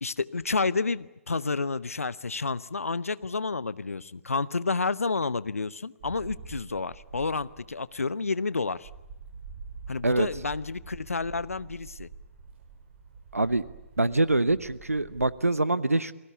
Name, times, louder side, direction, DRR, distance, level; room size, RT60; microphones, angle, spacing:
voice 1, 0.0-8.9 9.9-12.1, left 4 dB, 75° left, 18 dB, 0.9 m, -30 dB
sound 1, 6.0-15.3, right 4 dB, 45° right, 6.0 m, -46 dB
voice 2, 13.3-13.6 14.0-16.1, right 2 dB, 80° right, 18 dB, 0.9 m, -24 dB
29.0 x 19.5 x 8.2 m, 1.0 s
figure-of-eight pair, 125°, 8 cm